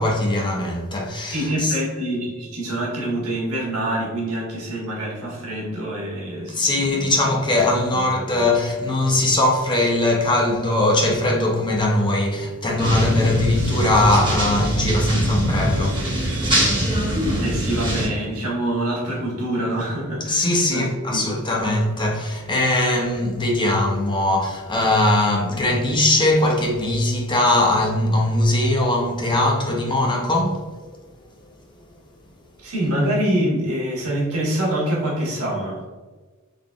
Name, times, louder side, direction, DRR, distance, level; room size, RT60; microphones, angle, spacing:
voice 1, 0.0-1.8 6.5-16.1 20.3-30.7, left 1 dB, 20° left, 0.6 m, -20 dB
voice 2, 1.3-6.8 7.9-8.2 17.4-21.3 32.6-35.8, right 1 dB, 75° right, 1.3 m, -25 dB
sound 1, 12.8-18.1, right 1 dB, 20° right, 1.5 m, -22 dB
3.8 x 3.4 x 2.3 m
head